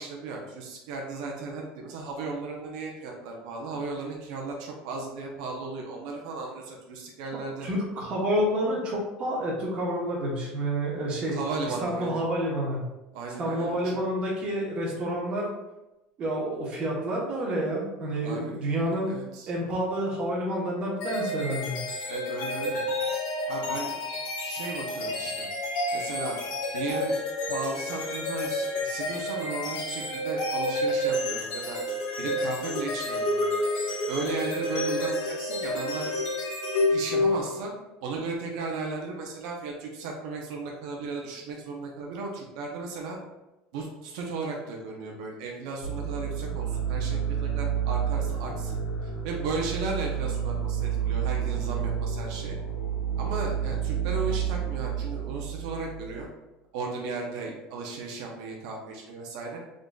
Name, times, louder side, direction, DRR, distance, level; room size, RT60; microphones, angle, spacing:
voice 1, 0.0-7.7 11.2-12.2 13.1-14.0 18.2-18.6 19.1-19.5 22.1-22.8 23.5-24.0 24.4-25.5 25.9-26.4 26.7-27.2 27.5-31.8 32.2-33.5 34.1-36.1 36.8-37.7 38.0-43.2 43.7-48.8 49.2-52.6 53.2-56.3 56.7-59.6, right 3 dB, 75° right, 0 dB, 0.7 m, -35 dB
voice 2, 7.6-11.4 11.7-12.8 13.4-15.5 16.2-19.2 19.5-21.8, right 1 dB, 30° right, -4 dB, 1.0 m, -29 dB
sound 1, 21.0-37.7, left 1 dB, 65° left, 1.1 m, -29 dB
sound 2, 45.8-56.2, right 8 dB, 85° left, 1.5 m, -30 dB
3.7 x 3.7 x 2.3 m, 0.99 s
cardioid pair, 180°, 4 cm